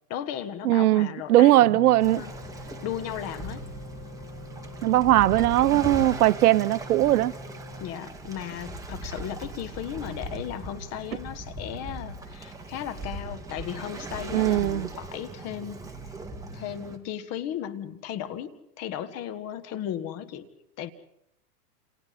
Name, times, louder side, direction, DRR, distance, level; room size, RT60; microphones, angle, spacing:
voice 1, 0.1-2.3 2.8-3.7 7.8-15.8 16.5-20.5 20.8-20.9, left 10 dB, 30° left, 1.6 m, -36 dB
voice 2, 0.6-2.2 4.8-7.3 14.3-14.9, right 14 dB, 70° right, 0.8 m, -20 dB
sound 1, 1.6-7.9, left 4 dB, 55° left, 5.6 m, -44 dB
Waves surf, 2.0-17.0, right 2 dB, 5° right, 2.1 m, -39 dB
29.5 x 28.0 x 4.2 m
hypercardioid pair, 135°, 47 cm